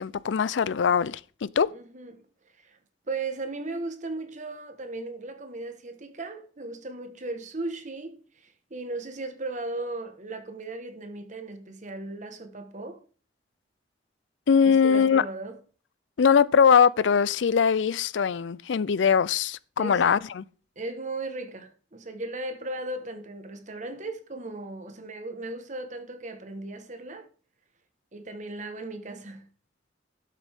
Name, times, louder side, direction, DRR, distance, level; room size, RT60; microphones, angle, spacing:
voice 1, 0.0-1.7 14.5-15.3 16.2-20.4, left 6 dB, 85° left, 0.4 m, -21 dB
voice 2, 1.7-2.2 2.6-2.8 3.1-13.0 14.6-15.6 19.8-20.1 20.8-27.3 28.1-29.5, right 2 dB, 40° right, 1.3 m, -37 dB
12.0 x 7.5 x 3.6 m
head